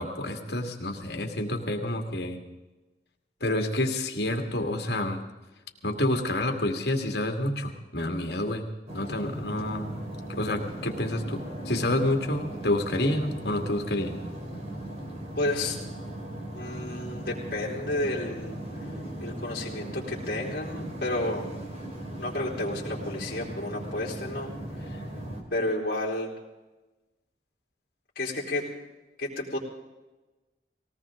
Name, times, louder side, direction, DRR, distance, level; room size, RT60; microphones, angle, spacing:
voice 1, 0.0-2.4 3.4-5.2 5.8-8.6 8.9-14.2 24.9-25.0, left 1 dB, 70° left, 4 dB, 2.2 m, -29 dB
sound 1, 8.9-25.4, right 1 dB, 40° right, 2.8 m, -38 dB
voice 2, 15.4-15.8 16.5-18.6 19.2-21.5 22.2-24.5 25.5-26.3 28.2-28.7 29.2-29.6, left 1 dB, 55° left, -4 dB, 3.8 m, -31 dB
19.5 x 18.5 x 3.8 m, 1.1 s
head